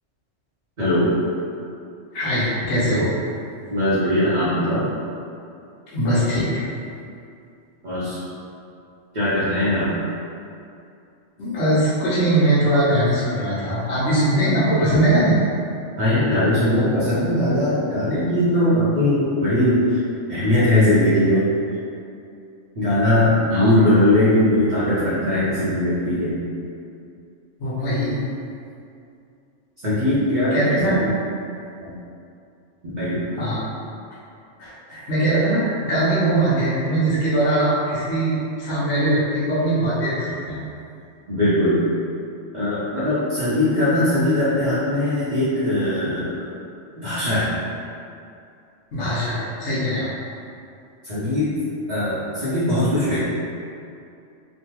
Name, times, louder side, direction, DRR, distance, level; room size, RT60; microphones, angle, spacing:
voice 1, 0.8-1.1 3.7-4.9 7.8-8.2 9.1-9.9 16.0-20.0 20.3-21.5 22.8-26.4 29.8-31.1 31.8-31.9 32.8-33.3 41.3-41.8 42.5-46.3 47.0-47.6 51.0-51.6 51.9-53.2, left 1 dB, 45° right, -13 dB, 0.7 m, -20 dB
voice 2, 2.1-3.1 5.9-6.6 11.4-15.4 23.5-23.7 27.6-28.1 30.5-31.0 33.4-33.6 34.6-40.6 48.9-50.1, right 1 dB, 65° left, -11 dB, 1.1 m, -21 dB
3.2 x 2.2 x 2.9 m, 2.5 s
omnidirectional pair, 1.3 m